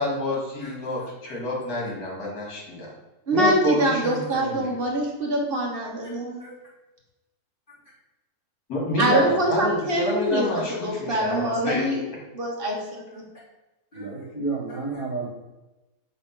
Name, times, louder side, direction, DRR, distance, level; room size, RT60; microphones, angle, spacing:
voice 1, 0.0-2.9 3.3-4.7 8.7-11.8, left 1 dB, 70° left, -3 dB, 2.4 m, -28 dB
voice 2, 3.3-6.4 9.0-12.0 12.3-12.8 13.1-13.2, right 1 dB, 40° right, -1 dB, 1.3 m, -24 dB
voice 3, 13.9-15.3, right 3 dB, 30° left, -7 dB, 2.6 m, -32 dB
5.8 x 3.5 x 5.1 m, 1.0 s
omnidirectional pair, 1.7 m